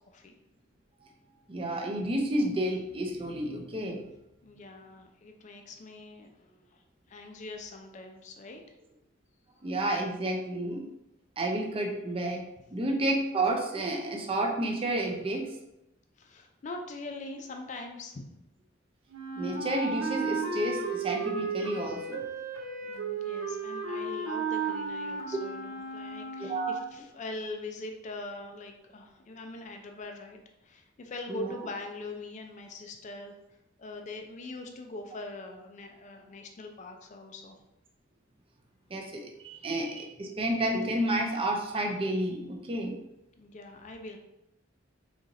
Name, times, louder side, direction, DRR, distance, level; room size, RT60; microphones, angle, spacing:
voice 1, 0.1-0.4 4.4-6.8 7.1-8.6 12.7-12.8 16.2-18.3 22.8-33.3 33.8-37.6 39.6-39.7 43.4-44.2, left 2 dB, 35° left, 3 dB, 0.4 m, -42 dB
voice 2, 1.5-4.0 9.6-10.9 11.4-12.5 12.7-15.5 19.4-22.2 26.4-26.8 31.3-31.5 38.9-43.0, right 1 dB, 30° right, 2 dB, 0.5 m, -30 dB
Wind instrument woodwind instrument, 19.1-26.8, right 4 dB, 85° right, 0.6 m, -34 dB
4.0 x 2.9 x 2.5 m, 0.87 s
head